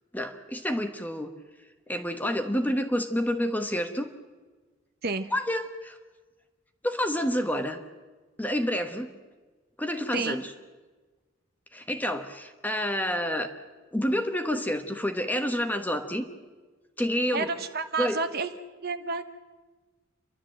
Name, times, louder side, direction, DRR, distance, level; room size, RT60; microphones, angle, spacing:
voice 1, 0.1-1.3 1.9-4.1 5.3-6.0 6.8-7.8 8.4-9.1 9.8-10.5 11.7-13.5 13.9-16.3 17.0-17.5 18.0-18.2, equal, 10° left, 6 dB, 1.2 m, -28 dB
voice 2, 17.3-18.5 18.8-19.2, right 4 dB, 50° right, 9 dB, 1.0 m, -30 dB
29.5 x 12.5 x 7.7 m, 1.3 s
head